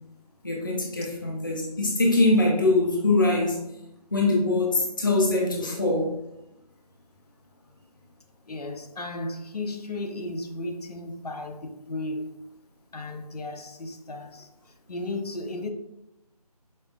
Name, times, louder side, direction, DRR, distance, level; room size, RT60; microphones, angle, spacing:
voice 1, 0.4-3.6 4.1-6.1, left 2 dB, 30° left, 0.4 m, -23 dB
voice 2, 8.5-12.3 12.9-14.5 14.9-15.7, left 2 dB, 75° left, 0.6 m, -34 dB
5.2 x 2.1 x 2.3 m
figure-of-eight pair, 170°, 20 cm